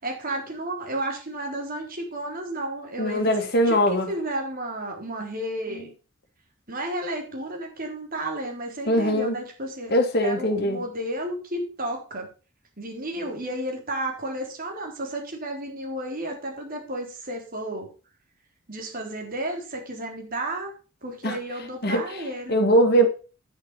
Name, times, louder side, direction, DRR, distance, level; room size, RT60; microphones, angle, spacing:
voice 1, 0.0-3.4 3.7-5.9 6.7-9.9 10.2-12.3 12.8-17.9 18.7-20.7 21.0-22.6, right 1 dB, 45° right, 1 dB, 3.9 m, -32 dB
voice 2, 3.0-4.1 8.9-9.3 9.9-10.8 21.2-21.4 21.8-22.0 22.5-23.1, equal, 55° left, 5 dB, 2.1 m, -21 dB
10.0 x 6.6 x 5.7 m, 0.34 s
head